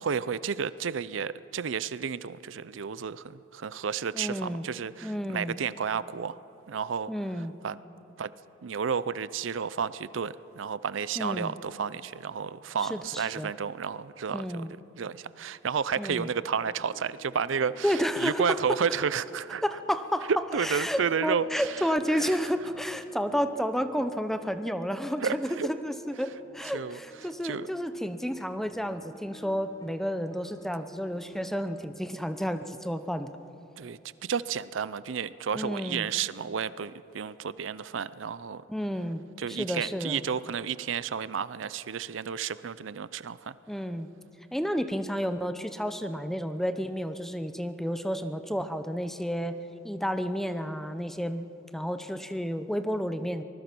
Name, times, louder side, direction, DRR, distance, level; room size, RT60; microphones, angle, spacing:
voice 1, 0.0-6.4 6.7-7.1 7.6-7.8 8.2-8.3 8.6-14.7 15.0-19.6 20.5-22.2 25.2-25.7 26.7-27.0 27.4-27.7 33.8-38.6 39.4-43.6, right 6 dB, 75° right, 17 dB, 0.5 m, -31 dB
voice 2, 4.1-4.6 5.0-5.6 7.1-7.5 11.2-11.5 12.8-13.5 14.3-14.7 16.0-16.3 17.8-18.6 19.6-20.3 20.6-33.4 35.5-36.1 38.7-40.2 43.7-44.1 44.5-49.6 49.8-51.5 51.7-53.4, equal, ahead, 10 dB, 0.8 m, -31 dB
sound 1, 16.6-31.9, left 1 dB, 20° left, 1.5 m, -54 dB
24.5 x 20.0 x 6.1 m, 2.8 s
head